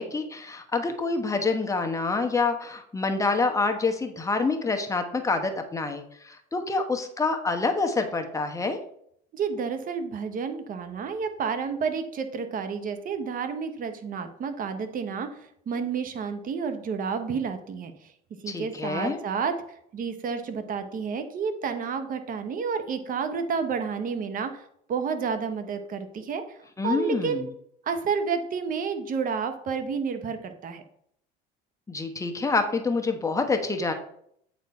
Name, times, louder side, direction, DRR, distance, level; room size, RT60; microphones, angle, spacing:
voice 1, 0.0-8.8 18.5-19.2 26.8-27.5 31.9-33.9, left 3 dB, 15° left, 4 dB, 1.0 m, -27 dB
voice 2, 9.3-18.1 18.4-26.6 26.8-27.4 27.8-30.8, right 6 dB, 45° right, 8 dB, 1.0 m, -30 dB
8.1 x 4.3 x 4.2 m, 0.70 s
supercardioid pair, 105°, 20 cm